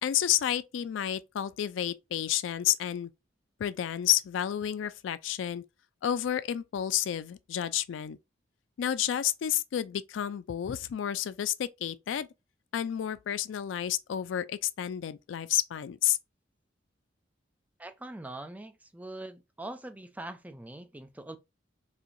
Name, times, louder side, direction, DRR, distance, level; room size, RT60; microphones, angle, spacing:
voice 1, 0.0-3.1 3.6-5.6 6.0-8.2 8.8-12.3 12.7-16.2, left 11 dB, 80° left, 0.3 m, -30 dB
voice 2, 17.8-21.4, right 1 dB, 10° right, 0.4 m, -42 dB
4.3 x 2.7 x 2.5 m
head